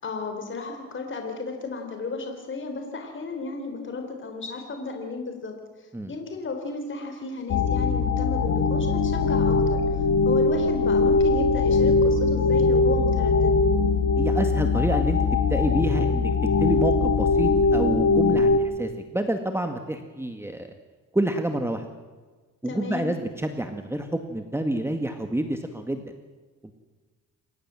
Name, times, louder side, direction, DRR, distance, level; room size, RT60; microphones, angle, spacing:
voice 1, 0.0-9.8 10.2-13.5 22.7-23.1, left 3 dB, 40° left, 4 dB, 3.8 m, -34 dB
sound 1, 7.5-18.6, left 4 dB, 60° left, 2.1 m, -21 dB
voice 2, 14.2-16.3 16.6-20.7 21.1-21.9 22.6-26.0 26.6-26.7, right 1 dB, 10° right, 6 dB, 2.0 m, -28 dB
28.0 x 15.5 x 7.7 m, 1.4 s
cardioid pair, 90°, 30 cm